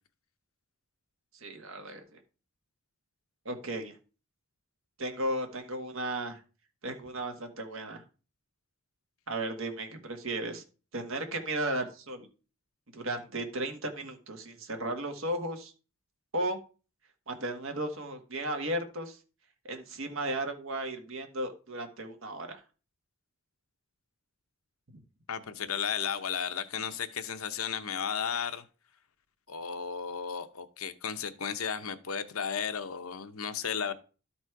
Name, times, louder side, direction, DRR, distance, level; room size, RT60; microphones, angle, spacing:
voice 1, 1.4-2.2 3.5-3.9 5.0-6.4 6.8-8.0 9.3-10.6 10.9-12.3 12.9-15.7 16.3-16.6 17.3-19.2 19.7-22.6 24.9-25.0, right 1 dB, 70° right, 5 dB, 1.6 m, -35 dB
voice 2, 25.3-28.6 29.5-33.9, left 7 dB, 85° left, 10 dB, 0.8 m, -34 dB
12.5 x 4.2 x 4.6 m, 0.35 s
head